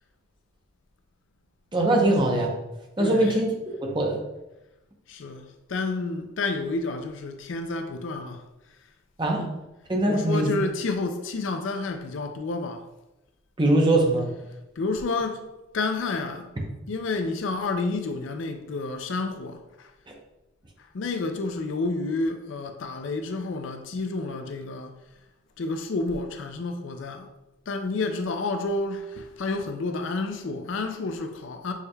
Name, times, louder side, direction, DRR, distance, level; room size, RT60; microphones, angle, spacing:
voice 1, 1.7-2.5 3.0-3.5 3.8-4.2 9.2-9.4 9.9-10.5 13.6-14.3 20.1-20.2, right 1 dB, 20° right, 0.7 m, -22 dB
voice 2, 3.0-3.4 5.1-8.4 9.3-9.5 10.1-12.9 14.8-15.4 15.7-16.5 16.9-19.9 20.8-25.0 25.6-27.3 27.7-31.7, left 3 dB, 65° left, 0.4 m, -30 dB
6.2 x 3.3 x 2.2 m
head